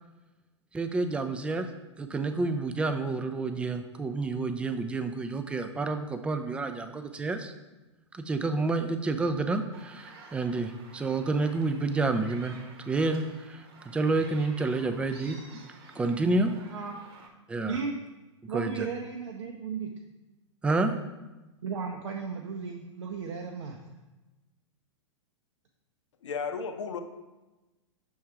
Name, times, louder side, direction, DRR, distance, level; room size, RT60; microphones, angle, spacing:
voice 1, 0.7-1.7 2.0-7.5 8.1-12.6 12.9-15.6 16.0-16.5 17.5-17.8 18.5-18.9 20.6-20.9, right 3 dB, 5° right, 8 dB, 0.3 m, -29 dB
sound 1, 9.7-17.3, right 4 dB, 50° right, 0.9 m, -51 dB
voice 2, 16.7-17.0 17.6-18.0 18.5-19.9 21.6-23.8, right 5 dB, 70° right, 1 dB, 0.6 m, -35 dB
voice 3, 26.2-27.0, left 5 dB, 70° left, 8 dB, 0.6 m, -33 dB
6.1 x 3.7 x 4.5 m, 1.1 s
figure-of-eight pair, 105°, 16 cm